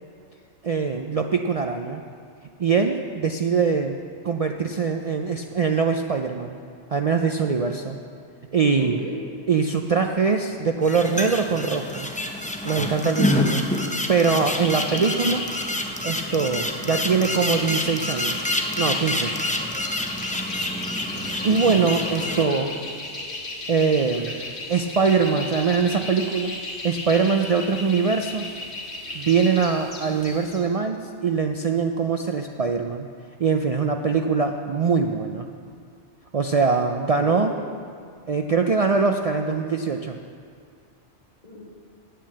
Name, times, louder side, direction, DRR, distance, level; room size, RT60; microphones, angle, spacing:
voice 1, 0.6-2.0 2.6-4.0 4.2-6.6 6.9-8.0 8.5-9.0 9.5-12.1 12.6-13.7 14.1-15.5 16.0-18.4 18.8-19.3 21.4-22.7 23.7-24.3 24.7-26.5 26.8-28.5 29.1-33.1 33.4-35.5 36.3-37.5 38.3-40.2, right 5 dB, 60° right, 4 dB, 0.3 m, -22 dB
voice 2, 8.8-9.2 13.1-14.0 14.8-15.1 22.2-22.6 37.2-37.6 41.4-41.6, left 2 dB, 35° left, -6 dB, 1.7 m, -36 dB
sound 1, 10.8-22.4, left 1 dB, 10° left, 0.5 m, -28 dB
sound 2, 14.0-30.7, left 2 dB, 65° left, 1.8 m, -35 dB
9.0 x 8.5 x 7.7 m, 2.2 s
omnidirectional pair, 1.2 m